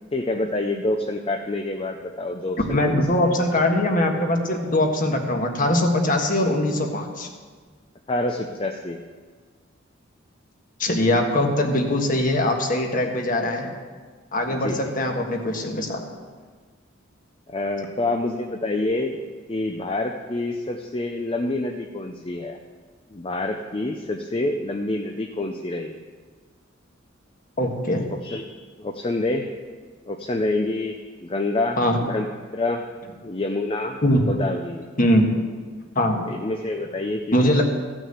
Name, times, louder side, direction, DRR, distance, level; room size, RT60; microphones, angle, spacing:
voice 1, 0.1-3.0 8.1-9.0 14.5-14.8 17.5-19.2 19.5-22.6 23.1-26.0 28.1-28.5 28.8-29.5 30.1-32.3 32.5-32.8 33.2-34.0 34.3-34.9 36.3-37.3, left 2 dB, 25° left, 4 dB, 0.5 m, -27 dB
voice 2, 2.7-7.3 10.8-13.7 14.3-16.0 27.6-28.1 31.8-32.0 34.0-34.2 35.0-35.3 35.9-36.2 37.3-37.6, left 1 dB, 40° left, 3 dB, 1.5 m, -21 dB
14.5 x 6.2 x 8.1 m, 1.5 s
head